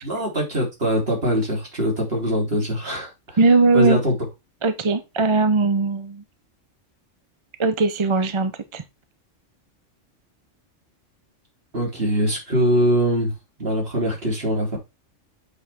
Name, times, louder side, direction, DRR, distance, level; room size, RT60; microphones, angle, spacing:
voice 1, 0.0-3.4 3.7-4.1 11.7-13.3 13.6-14.8, equal, 45° right, 3.8 m, -22 dB
voice 2, 3.4-4.0 4.6-6.2 7.6-8.8, right 3 dB, 30° right, 0.6 m, -19 dB
8.1 x 6.3 x 3.5 m
omnidirectional pair, 1.3 m